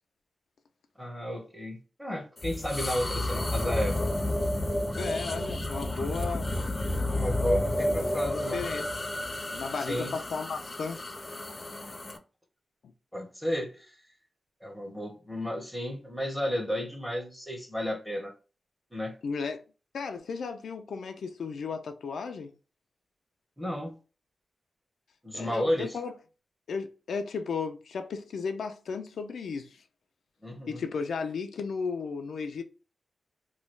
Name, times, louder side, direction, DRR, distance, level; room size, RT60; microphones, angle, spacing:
voice 1, 1.0-4.1 7.1-8.6 9.9-10.1 13.1-14.0 14.6-18.3 18.9-19.1 23.6-23.9 25.2-26.0 30.4-30.8, equal, 5° right, 0.8 m, -33 dB
sound 1, 2.4-12.2, left 1 dB, 25° left, 0.4 m, -31 dB
voice 2, 5.0-6.5 7.7-8.9 9.5-11.0 19.2-19.6 19.9-22.5 25.3-26.1 26.7-29.8 30.7-32.6, left 5 dB, 85° left, 0.4 m, -34 dB
3.0 x 2.3 x 3.1 m
wide cardioid pair, 130°, 0 cm